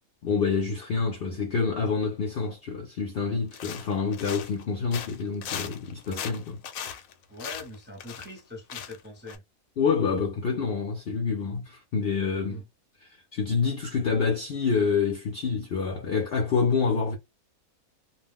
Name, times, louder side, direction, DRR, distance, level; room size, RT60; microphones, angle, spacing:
voice 1, 0.2-6.6 9.8-12.6 13.0-17.2, left 5 dB, 60° left, 0.6 m, -27 dB
sound 1, 3.5-4.6 4.9-8.4 8.7-9.0 9.3-9.4, left 8 dB, 80° left, 1.0 m, -38 dB
voice 2, 7.3-9.4 11.4-11.5 12.5-12.7, left 2 dB, 10° right, 0.7 m, -42 dB
2.4 x 2.1 x 3.5 m
omnidirectional pair, 1.5 m